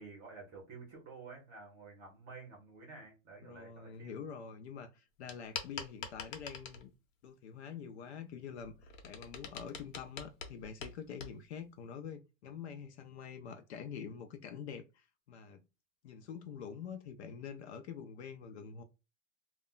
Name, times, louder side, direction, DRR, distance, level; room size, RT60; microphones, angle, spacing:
voice 1, 0.0-4.2, right 4 dB, 20° right, 0.7 m, -51 dB
voice 2, 3.4-6.9 7.2-15.6 16.0-18.8, left 7 dB, 55° left, 0.5 m, -46 dB
sound 1, 5.3-6.9 8.4-11.4, left 6 dB, 70° left, 0.9 m, -45 dB
2.3 x 2.1 x 3.6 m
supercardioid pair, 175°, 40 cm